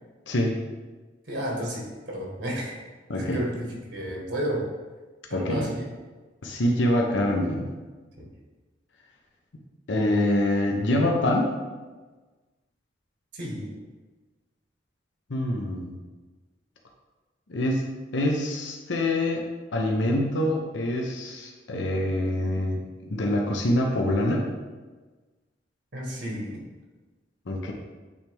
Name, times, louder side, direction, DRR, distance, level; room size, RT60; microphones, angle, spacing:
voice 1, 0.3-0.6 3.1-3.4 5.3-5.7 6.4-7.7 9.9-11.5 15.3-16.0 17.5-17.8 18.1-19.4 19.7-22.8 23.1-24.5 27.5-27.7, left 1 dB, 80° left, 0 dB, 0.8 m, -25 dB
voice 2, 1.3-2.8 3.2-4.6 5.3-5.8 13.3-13.7 25.9-26.6, equal, 75° right, -2 dB, 1.5 m, -32 dB
8.6 x 3.4 x 3.5 m, 1.3 s
head